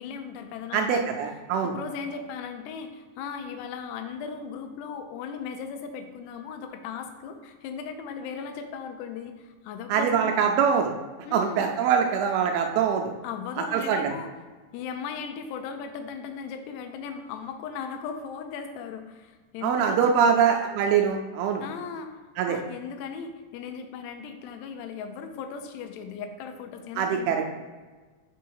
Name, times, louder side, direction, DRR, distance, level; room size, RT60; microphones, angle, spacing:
voice 1, 0.0-1.1 1.6-10.5 11.2-11.7 13.2-14.3 14.7-20.8 21.6-22.1 22.5-27.4, left 6 dB, 90° left, 6 dB, 2.8 m, -37 dB
voice 2, 0.7-1.7 9.9-10.9 11.3-13.1 13.7-14.1 19.6-21.6 22.4-22.6 27.0-27.4, right 7 dB, 80° right, 3 dB, 2.3 m, -23 dB
6.1 x 4.1 x 4.6 m, 1.3 s
omnidirectional pair, 4.7 m